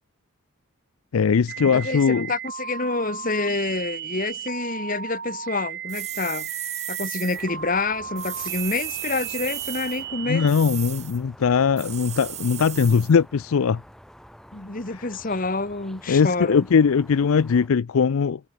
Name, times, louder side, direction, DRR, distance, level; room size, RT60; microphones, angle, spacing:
voice 1, 1.1-2.3 10.3-13.8 16.1-18.4, left 6 dB, 80° left, 0.4 m, -20 dB
sound 1, 1.5-10.5, right 8 dB, 50° right, 2.6 m, -35 dB
voice 2, 1.6-6.5 6.9-10.5 14.5-16.6, left 3 dB, 40° left, 1.5 m, -28 dB
sound 2, 5.9-7.4 8.2-10.0 10.5-11.2 11.8-13.1, right 12 dB, 30° right, 2.1 m, -35 dB
sound 3, 7.3-17.7, equal, ahead, 5.6 m, -49 dB
head